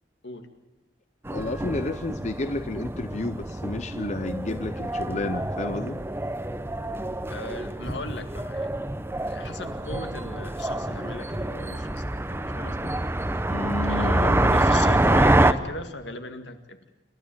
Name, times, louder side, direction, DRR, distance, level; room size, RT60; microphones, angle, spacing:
voice 1, 1.3-6.0 13.5-14.4, left 2 dB, 40° left, 11 dB, 0.7 m, -31 dB
sound 1, 1.3-15.5, right 1 dB, 15° right, 0.7 m, -26 dB
voice 2, 7.3-8.9 9.3-13.0 13.8-16.8, left 2 dB, 80° left, 7 dB, 2.1 m, -37 dB
27.0 x 13.0 x 8.9 m, 1.0 s
head